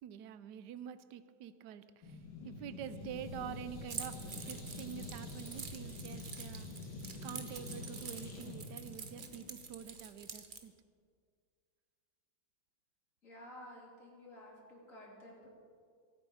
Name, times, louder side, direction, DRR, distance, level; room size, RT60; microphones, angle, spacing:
voice 1, 0.0-10.7, right 9 dB, 70° right, 13 dB, 1.2 m, -47 dB
sound 1, 2.0-10.0, left 2 dB, 70° left, 2.5 m, -47 dB
Keys jangling, 3.9-10.6, right 5 dB, 40° right, 0.8 m, -47 dB
voice 2, 13.2-15.5, left 1 dB, 45° left, -3 dB, 3.6 m, -53 dB
24.0 x 9.1 x 4.9 m, 2.1 s
omnidirectional pair, 2.0 m